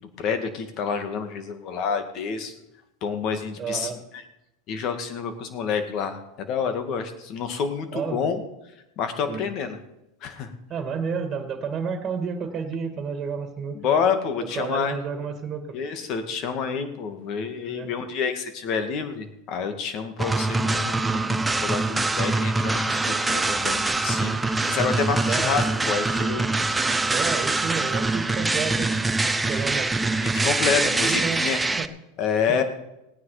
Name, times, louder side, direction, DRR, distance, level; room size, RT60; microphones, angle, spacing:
voice 1, 0.0-2.5 3.0-3.9 4.7-8.4 9.0-9.8 10.2-10.5 13.7-15.0 15.7-26.4 30.2-31.6 32.2-32.6, left 6 dB, 50° left, 8 dB, 2.1 m, -28 dB
voice 2, 3.6-4.0 7.9-8.3 9.3-9.4 10.7-13.8 14.4-15.8 17.7-17.9 25.3-25.6 27.1-28.9 29.5-29.9 30.8-31.9 32.5-32.6, right 6 dB, 30° right, 7 dB, 2.2 m, -31 dB
sound 1, 20.2-31.9, right 3 dB, 10° right, 0.7 m, -24 dB
17.5 x 9.5 x 5.0 m, 0.90 s
hypercardioid pair, 105°, 0 cm